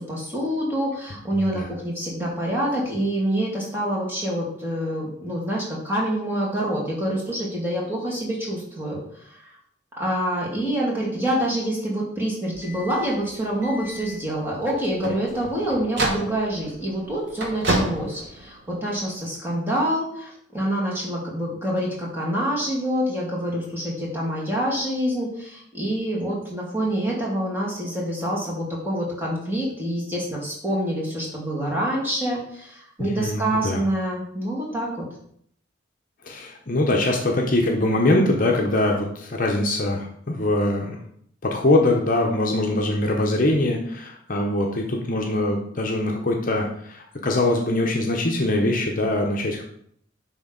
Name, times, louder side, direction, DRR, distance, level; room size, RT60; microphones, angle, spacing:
voice 1, 0.1-9.6 10.0-34.9, right 1 dB, 10° right, -5 dB, 2.2 m, -26 dB
voice 2, 1.3-1.7 33.0-33.8 36.2-41.0 41.4-49.6, left 1 dB, 45° left, 0 dB, 0.8 m, -23 dB
sound 1, 12.5-19.1, right 1 dB, 65° right, 1.4 m, -31 dB
10.5 x 3.6 x 3.9 m, 0.67 s
head